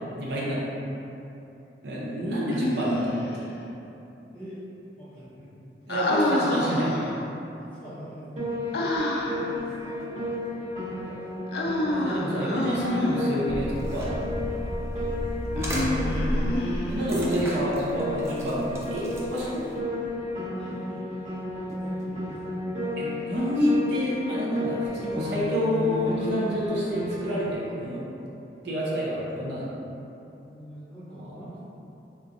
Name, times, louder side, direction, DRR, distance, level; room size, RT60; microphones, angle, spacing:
voice 1, 0.2-0.6 1.8-3.3 5.9-7.0 11.9-14.2 16.9-19.7 23.0-28.0 28.6-29.7 31.3-31.5, equal, 70° right, -6 dB, 0.6 m, -28 dB
Human voice, 2.5-3.4 5.9-7.2 8.7-9.5 11.5-13.3 15.6-17.2, left 1 dB, 60° left, 0.3 m, -28 dB
voice 2, 4.9-5.6 6.3-6.5 7.6-10.6 10.9-11.4 20.2-21.1 21.7-22.8 30.4-31.6, equal, 5° left, -13 dB, 0.9 m, -44 dB
Piano, 8.4-27.5, left 1 dB, 40° right, 1.0 m, -33 dB
sound 1, 13.5-19.8, equal, 15° right, 0.4 m, -33 dB
3.5 x 3.1 x 2.5 m, 2.9 s
head